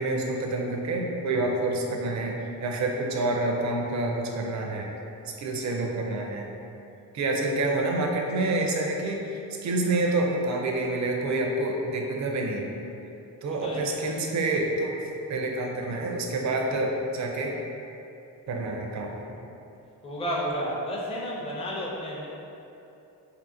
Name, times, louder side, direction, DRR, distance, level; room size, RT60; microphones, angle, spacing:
voice 1, 0.0-4.9 5.3-6.5 7.1-12.7 13.4-15.0 15.3-17.5 18.5-19.2, right 2 dB, 45° right, 0 dB, 0.4 m, -28 dB
voice 2, 13.4-14.1 20.0-22.3, equal, 15° left, -4 dB, 0.5 m, -32 dB
2.7 x 2.5 x 2.6 m, 2.8 s
cardioid pair, 65°, 41 cm